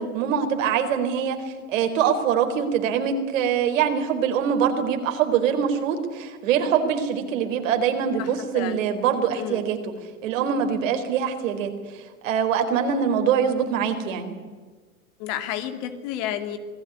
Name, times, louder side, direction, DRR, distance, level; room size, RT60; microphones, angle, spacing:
voice 1, 0.0-9.8 10.2-14.4, right 7 dB, 65° right, 6 dB, 4.3 m, -24 dB
voice 2, 15.2-16.6, left 11 dB, 55° left, 8 dB, 2.7 m, -30 dB
27.0 x 18.5 x 9.5 m, 1.4 s
hypercardioid pair, 90°, 41 cm